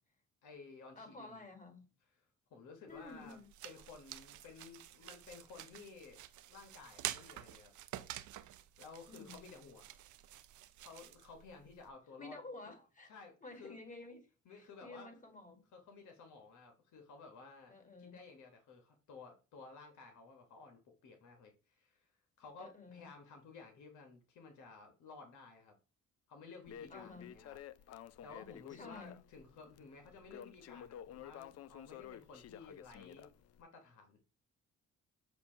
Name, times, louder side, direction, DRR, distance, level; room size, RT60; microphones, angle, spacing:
voice 1, 0.4-1.4 2.5-3.4 3.6-6.2 6.5-7.7 8.8-10.0 10.8-12.4 13.1-13.8 14.4-15.1 15.7-22.1 22.4-25.8 26.3-27.6 28.2-33.3 33.6-34.2, left 4 dB, 75° left, 1.3 m, -55 dB
voice 2, 1.0-1.9 2.9-3.5 9.1-9.5 12.2-13.1 13.4-15.6 17.7-18.2 22.6-23.1 26.9-27.3 28.7-29.2, left 3 dB, 25° left, 1.9 m, -52 dB
sound 1, 2.9-11.9, right 13 dB, 75° right, 0.6 m, -49 dB
Crackle, 26.7-33.6, left 10 dB, 55° left, 0.5 m, -52 dB
6.9 x 2.6 x 5.6 m
cardioid pair, 90°, 30 cm